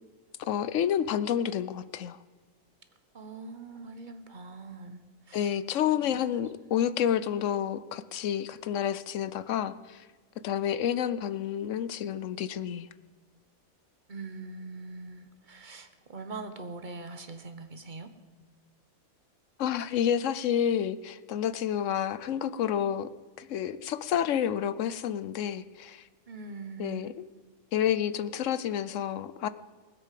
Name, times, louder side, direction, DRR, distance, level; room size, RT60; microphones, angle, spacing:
voice 1, 0.5-2.2 5.3-10.0 10.4-12.9 19.6-23.1 23.4-26.0 26.8-27.3 27.7-29.5, left 9 dB, 65° left, 15 dB, 0.9 m, -29 dB
voice 2, 3.1-5.0 5.3-5.5 6.0-6.2 14.1-18.1 26.3-27.1, right 3 dB, 35° right, 9 dB, 1.1 m, -42 dB
19.5 x 8.2 x 7.6 m, 1.4 s
omnidirectional pair, 1.5 m